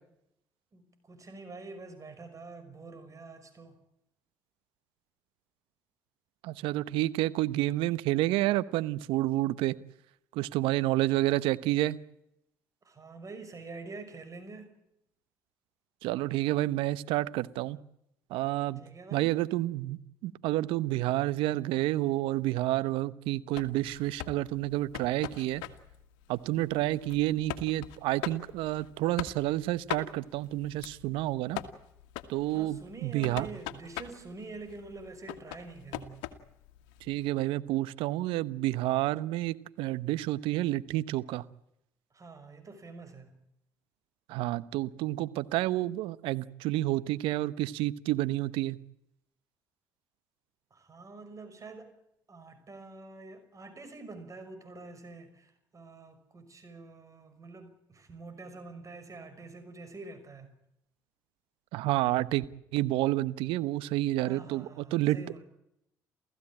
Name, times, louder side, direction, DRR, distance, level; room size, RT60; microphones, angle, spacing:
voice 1, 0.7-3.8 12.8-14.7 18.8-19.4 32.5-36.3 42.1-43.4 50.7-51.9 52.3-60.5 64.2-65.4, right 3 dB, 35° right, 9 dB, 5.9 m, -46 dB
voice 2, 6.4-9.8 10.3-12.0 16.0-17.8 18.3-18.8 19.1-25.6 26.3-31.6 32.3-33.5 37.0-41.4 44.3-48.8 61.7-62.4 62.7-65.2, right 16 dB, 70° right, 16 dB, 1.0 m, -29 dB
sound 1, 23.5-37.3, left 13 dB, 75° left, 1.8 m, -43 dB
28.5 x 15.5 x 8.8 m, 0.81 s
hypercardioid pair, 55°, 9 cm